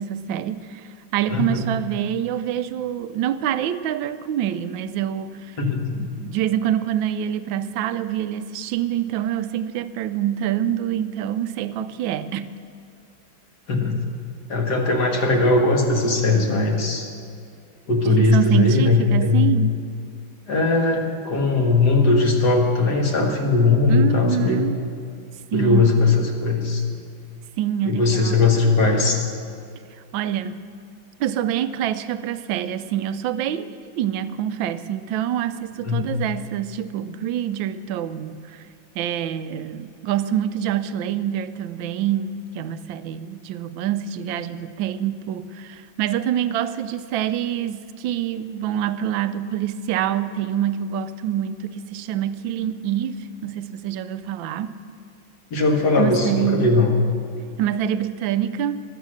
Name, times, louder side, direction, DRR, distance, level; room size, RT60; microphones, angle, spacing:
voice 1, 0.0-5.6 5.9-12.5 18.1-19.7 23.9-24.8 25.5-26.0 27.6-28.4 30.1-30.6 31.2-38.7 38.9-54.8 56.0-56.7 57.6-58.8, right 10 dB, 75° right, 12 dB, 1.3 m, -26 dB
voice 2, 1.3-1.6 5.6-6.0 13.7-13.9 14.5-17.1 17.9-19.5 20.5-24.6 25.5-26.8 27.9-29.2 35.8-36.0 55.5-56.9, left 3 dB, 55° left, 1 dB, 2.3 m, -19 dB
22.0 x 8.2 x 6.4 m, 2.3 s
omnidirectional pair, 2.2 m